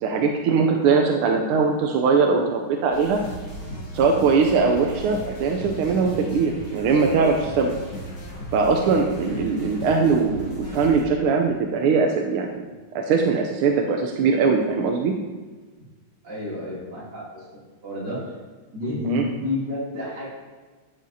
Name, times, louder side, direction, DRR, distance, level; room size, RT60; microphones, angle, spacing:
voice 1, 0.0-3.2 3.9-7.7 8.5-12.6 12.9-15.1 19.1-19.2, right 5 dB, 90° right, 2 dB, 1.5 m, -21 dB
sound 1, 2.9-11.0, equal, 75° left, 2.7 m, -36 dB
voice 2, 16.2-17.4 17.8-18.2 18.7-20.3, left 1 dB, 55° right, -7 dB, 3.4 m, -30 dB
12.0 x 7.4 x 2.7 m, 1.3 s
omnidirectional pair, 2.3 m